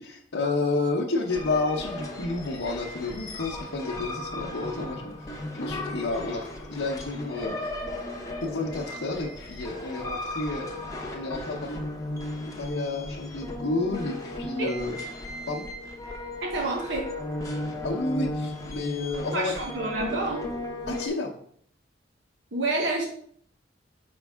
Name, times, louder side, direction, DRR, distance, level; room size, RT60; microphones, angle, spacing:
voice 1, 0.0-7.8 8.4-11.8 12.4-15.0 15.5-15.7 17.8-19.6 20.9-21.3, left 3 dB, 80° left, -5 dB, 0.8 m, -30 dB
sound 1, 1.3-21.1, left 1 dB, 20° left, 0.8 m, -36 dB
voice 2, 16.4-17.1 19.3-20.5 22.5-23.0, right 2 dB, 75° right, 0 dB, 0.9 m, -28 dB
5.3 x 5.2 x 3.5 m, 0.63 s
head